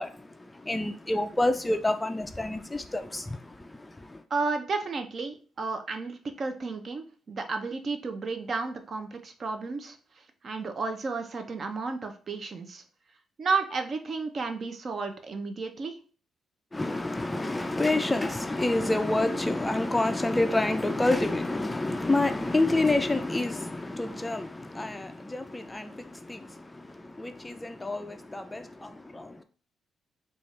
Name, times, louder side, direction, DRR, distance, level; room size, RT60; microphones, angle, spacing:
voice 1, 0.0-4.2 16.7-29.4, left 2 dB, 15° left, 0.3 m, -28 dB
voice 2, 4.3-10.0 10.4-12.8 13.4-16.0, right 4 dB, 45° right, 0.6 m, -32 dB
4.3 x 2.4 x 3.2 m
cardioid pair, 90°, 0 cm